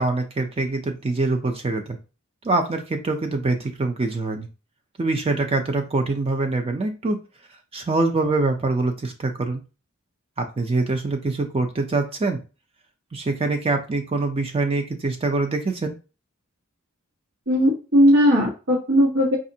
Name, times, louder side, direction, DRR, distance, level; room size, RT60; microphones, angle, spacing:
voice 1, 0.0-2.0 2.4-4.5 5.0-7.2 7.7-9.6 10.4-12.4 13.1-15.9, right 3 dB, 25° right, 5 dB, 0.4 m, -24 dB
voice 2, 17.5-19.4, equal, 75° right, -4 dB, 1.1 m, -18 dB
5.0 x 2.4 x 2.7 m, 0.32 s
head